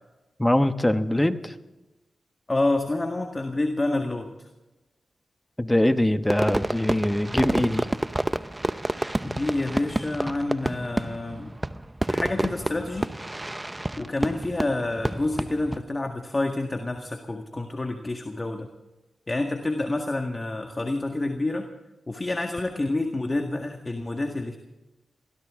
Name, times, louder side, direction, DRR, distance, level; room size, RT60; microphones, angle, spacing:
voice 1, 0.4-1.5 5.6-7.9, left 1 dB, 15° left, 10 dB, 1.2 m, -22 dB
voice 2, 2.5-4.5 9.2-11.5 12.1-13.1 14.0-18.7 19.3-21.7 22.1-24.6, left 2 dB, 30° left, 4 dB, 1.8 m, -28 dB
Fireworks, 6.3-15.8, right 1 dB, 20° right, 0.7 m, -29 dB
23.0 x 16.5 x 3.8 m, 1.1 s
cardioid pair, 50°, 0 cm